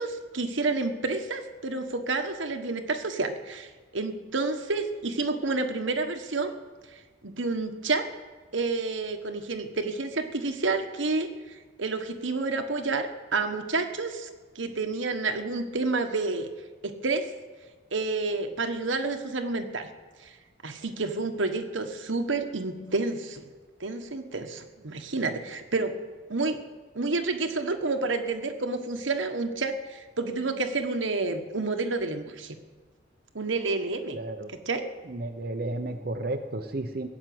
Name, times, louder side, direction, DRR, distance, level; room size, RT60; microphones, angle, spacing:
voice 1, 0.0-3.7 3.9-6.5 7.2-8.1 8.5-11.3 11.8-14.3 14.5-16.5 16.8-17.3 17.9-19.9 20.6-23.4 23.8-25.9 26.3-26.6 26.9-32.6 33.3-34.2 34.5-34.9, right 3 dB, 85° right, 6 dB, 1.3 m, -29 dB
voice 2, 34.1-34.5 35.1-37.1, right 2 dB, 50° right, 4 dB, 0.8 m, -32 dB
17.0 x 7.5 x 9.4 m, 1.4 s
head